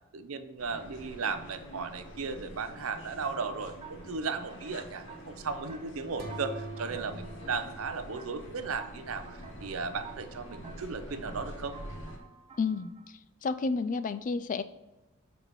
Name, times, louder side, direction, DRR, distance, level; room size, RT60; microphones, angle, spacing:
voice 1, 0.1-11.8, right 4 dB, 75° right, 10 dB, 0.6 m, -36 dB
sound 1, 0.6-12.2, equal, 60° left, 1.1 m, -46 dB
sound 2, 3.2-13.1, right 5 dB, 25° right, 0.6 m, -53 dB
sound 3, 6.2-9.0, right 2 dB, 50° right, 1.2 m, -44 dB
voice 2, 12.6-12.9 13.4-14.6, left 4 dB, 40° left, 13 dB, 0.3 m, -30 dB
6.5 x 4.1 x 4.5 m, 1.0 s
head